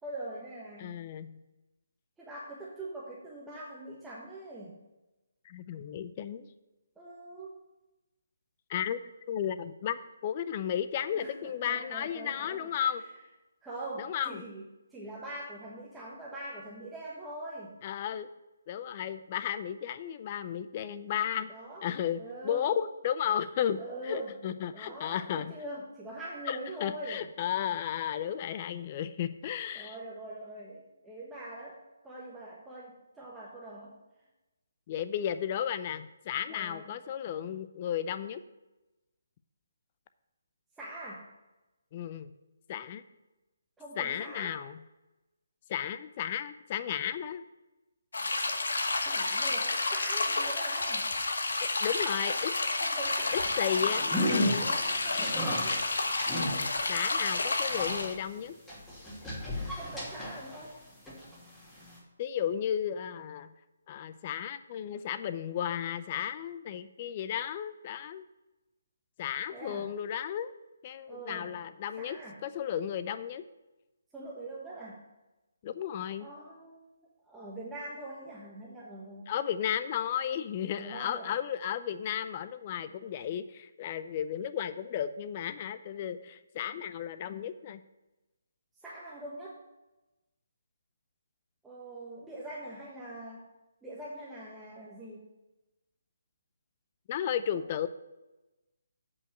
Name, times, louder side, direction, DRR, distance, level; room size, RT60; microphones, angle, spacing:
voice 1, 0.0-1.0 2.2-4.8 7.0-7.6 11.2-12.7 13.6-14.7 14.9-17.8 21.5-21.9 22.2-22.7 23.8-24.3 24.7-27.2 29.7-34.0 36.5-36.9 40.8-41.3 43.8-44.6 49.0-51.1 52.8-54.2 54.6-55.8 59.7-60.8 69.5-69.9 71.1-71.5 72.0-72.4 74.1-75.0 76.2-76.9 77.2-79.3 80.7-81.4 88.8-89.6 91.6-93.4 93.8-95.2, right 1 dB, 5° right, -6 dB, 1.3 m, -43 dB
voice 2, 0.8-1.4 5.5-6.5 8.7-9.0 9.3-13.0 14.0-14.4 17.8-18.3 18.7-21.5 21.8-25.5 26.5-30.0 34.9-38.4 41.9-42.3 42.7-43.0 44.0-44.8 45.7-47.4 51.6-52.5 53.3-54.7 56.9-58.6 62.2-63.5 63.9-68.3 69.2-70.5 70.8-72.2 72.4-73.4 75.6-76.3 79.3-87.8 97.1-97.9, left 9 dB, 35° left, 12 dB, 0.5 m, -34 dB
sound 1, 48.1-58.2, left 3 dB, 70° left, 1.1 m, -30 dB
sound 2, 53.2-60.7 61.1-62.0, left 1 dB, 10° left, 2.6 m, -35 dB
8.3 x 5.4 x 6.4 m, 1.0 s
figure-of-eight pair, 145°, 0 cm